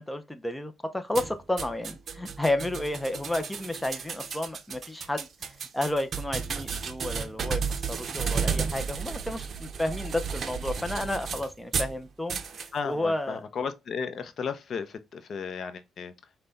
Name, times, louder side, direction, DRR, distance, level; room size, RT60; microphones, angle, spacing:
voice 1, 0.0-5.3 5.7-12.4 12.8-13.5, left 1 dB, 10° left, 0.5 m, -31 dB
sound 1, 1.1-12.0 12.3-12.7, right 6 dB, 50° right, 0.6 m, -33 dB
voice 2, 12.7-16.1, left 6 dB, 55° left, 0.6 m, -34 dB
5.5 x 2.2 x 3.9 m
cardioid pair, 90°, 0 cm